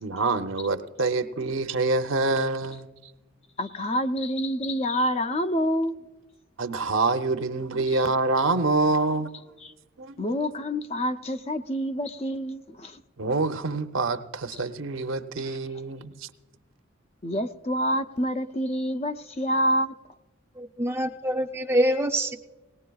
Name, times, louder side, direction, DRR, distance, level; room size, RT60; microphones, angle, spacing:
voice 1, 0.0-2.9 6.6-9.3 10.0-10.1 13.2-16.1, right 3 dB, 80° right, 0.7 m, -26 dB
voice 2, 3.6-6.0 7.9-8.0 9.6-9.7 10.2-13.0 14.5-14.6 15.4-15.6 17.2-19.9, equal, 30° left, 0.5 m, -27 dB
voice 3, 20.6-22.3, right 1 dB, 10° right, 0.6 m, -25 dB
19.0 x 19.0 x 2.3 m
head